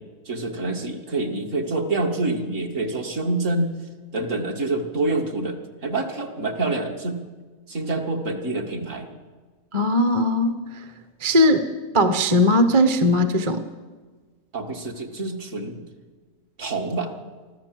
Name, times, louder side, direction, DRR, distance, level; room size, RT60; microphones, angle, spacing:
voice 1, 0.3-3.7 4.1-7.2 7.7-9.2 14.5-15.8 16.6-17.1, right 2 dB, 55° right, 2 dB, 2.3 m, -27 dB
voice 2, 9.7-10.6 11.2-11.7 11.9-13.6, left 1 dB, 25° right, 8 dB, 1.0 m, -19 dB
24.0 x 14.5 x 7.6 m, 1.4 s
omnidirectional pair, 1.6 m